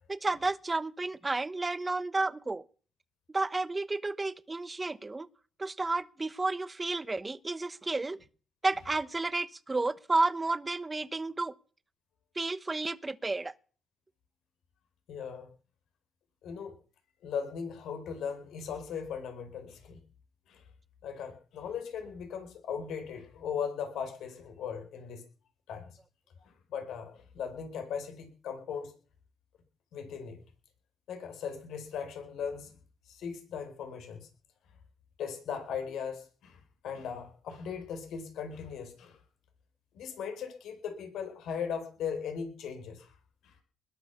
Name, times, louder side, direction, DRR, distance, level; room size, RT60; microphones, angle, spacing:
voice 1, 0.1-2.6 3.3-5.3 5.6-8.2 8.6-11.5 12.4-13.5, right 3 dB, 20° right, 1.0 m, -31 dB
voice 2, 15.1-15.5 16.4-16.8 17.2-20.0 20.5-20.6 21.0-25.2 25.7-26.0 26.4-28.9 29.9-30.4 31.1-32.7 33.1-34.3 35.2-39.2 39.9-43.1 43.4-43.5, left 7 dB, 80° left, 4.7 m, -38 dB
20.5 x 9.2 x 7.1 m
cardioid pair, 90°, 0 cm